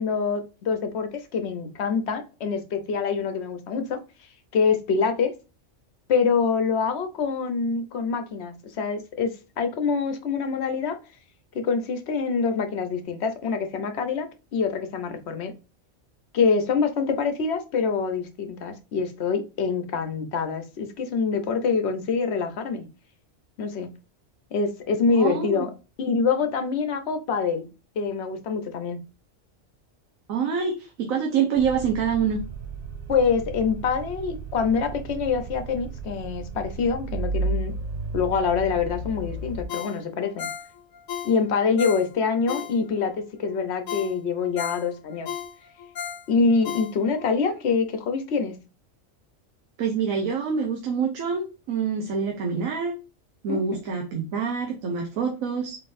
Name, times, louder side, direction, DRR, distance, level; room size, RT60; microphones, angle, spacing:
voice 1, 0.0-4.0 4.5-5.3 6.1-11.0 11.5-15.5 16.3-22.9 23.6-23.9 24.5-25.7 26.0-27.7 28.0-29.0 33.1-37.7 38.1-40.5 41.2-45.3 46.3-48.6 53.5-53.8, left 5 dB, 60° left, 1.0 m, -25 dB
voice 2, 25.1-25.6 30.3-32.4 49.8-52.9 53.4-55.8, right 6 dB, 85° right, 1.2 m, -26 dB
sound 1, 31.6-39.7, right 2 dB, 50° right, 0.5 m, -33 dB
Ringtone, 39.7-43.1 43.5-43.6 43.9-47.3 47.7-47.8, left 8 dB, 85° left, 1.1 m, -35 dB
4.4 x 3.9 x 2.5 m
omnidirectional pair, 1.4 m